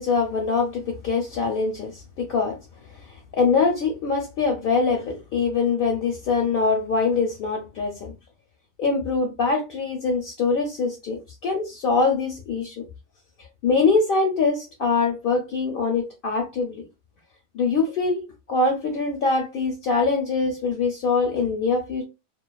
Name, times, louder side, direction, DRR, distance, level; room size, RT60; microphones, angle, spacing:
voice 1, 0.0-2.6 2.9-8.1 8.8-12.8 13.4-16.8 17.5-22.1, left 4 dB, 60° left, 0.6 m, -23 dB
2.4 x 2.2 x 2.3 m
omnidirectional pair, 1.3 m